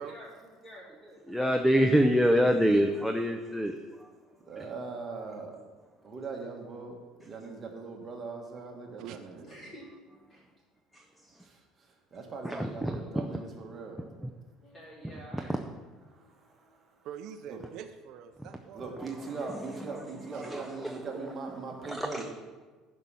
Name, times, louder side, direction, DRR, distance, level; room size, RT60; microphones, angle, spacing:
voice 1, 0.0-1.8 2.2-2.3 9.5-9.9 10.3-10.4 14.6-15.6, equal, 25° left, -6 dB, 3.2 m, -49 dB
voice 2, 1.3-3.8 4.6-4.7 10.9-11.0 12.4-13.4 14.2-14.3 15.3-15.6 18.4-18.5 19.0-21.0 21.4-21.5 21.9-22.2, equal, ahead, 2 dB, 0.4 m, -27 dB
voice 3, 4.5-5.5 6.0-6.9 7.2-9.5 11.4-11.6 12.1-14.0 16.1-16.6 17.5-17.6 18.7-22.2, right 4 dB, 25° right, 0 dB, 1.5 m, -40 dB
voice 4, 9.0-9.5 17.0-19.6 20.3-20.5, right 9 dB, 55° right, 6 dB, 0.5 m, -45 dB
11.0 x 5.4 x 6.2 m, 1.4 s
cardioid pair, 165°, 0 cm